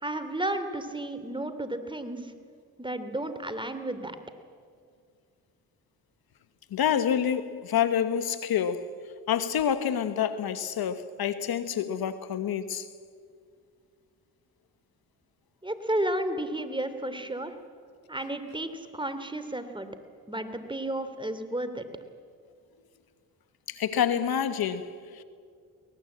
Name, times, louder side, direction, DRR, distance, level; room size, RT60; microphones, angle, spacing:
voice 1, 0.0-2.3 2.8-4.2 15.6-17.5 18.1-19.9 20.3-21.9, right 1 dB, 10° right, 2.9 m, -32 dB
voice 2, 6.7-8.9 9.3-12.9 23.7-25.2, left 8 dB, 65° left, 1.3 m, -28 dB
23.5 x 18.5 x 8.6 m
supercardioid pair, 55°, 39 cm